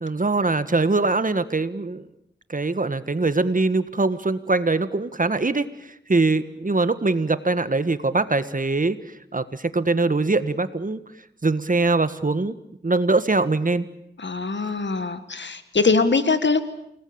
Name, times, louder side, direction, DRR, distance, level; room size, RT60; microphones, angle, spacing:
voice 1, 0.0-2.0 2.5-5.7 6.1-9.0 9.3-11.0 11.4-12.5 12.8-13.9, right 3 dB, 45° right, 12 dB, 1.6 m, -22 dB
voice 2, 14.2-16.6, left 4 dB, 75° left, 11 dB, 1.7 m, -22 dB
29.0 x 19.5 x 8.8 m, 0.78 s
wide cardioid pair, 65°, 19 cm